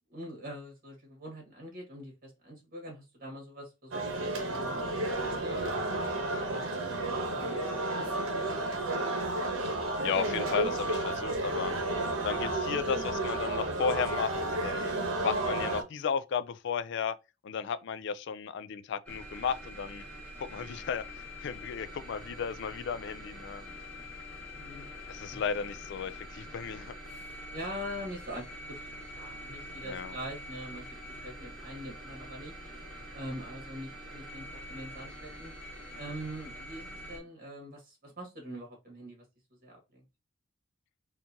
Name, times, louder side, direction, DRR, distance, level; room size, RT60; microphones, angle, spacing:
voice 1, 0.1-6.1 6.5-8.8 24.5-24.9 25.3-25.4 27.1-28.9 29.1-30.9 31.2-32.5 33.1-35.5 36.0-39.2 39.6-40.0, equal, 45° right, 1.9 m, -44 dB
sound 1, 3.9-15.8, right 2 dB, 80° right, 0.9 m, -32 dB
voice 2, 10.0-11.7 12.2-14.9 15.2-17.2 17.4-20.0 20.4-23.7 25.1-26.9 29.8-30.1, left 6 dB, 65° left, 0.4 m, -34 dB
sound 2, 19.1-37.2, equal, 5° left, 1.4 m, -45 dB
4.4 x 2.5 x 2.8 m
head